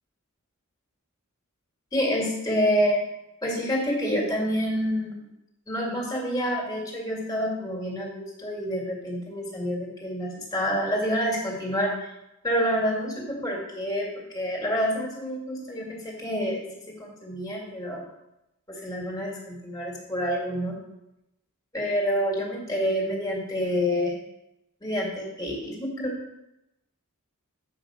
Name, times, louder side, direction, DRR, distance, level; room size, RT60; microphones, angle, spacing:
voice 1, 1.9-3.1 3.4-5.2 5.7-12.1 12.4-18.0 18.7-20.8 21.7-24.1 24.8-26.2, equal, 15° left, -3 dB, 2.1 m, -28 dB
8.5 x 5.4 x 4.9 m, 0.91 s
head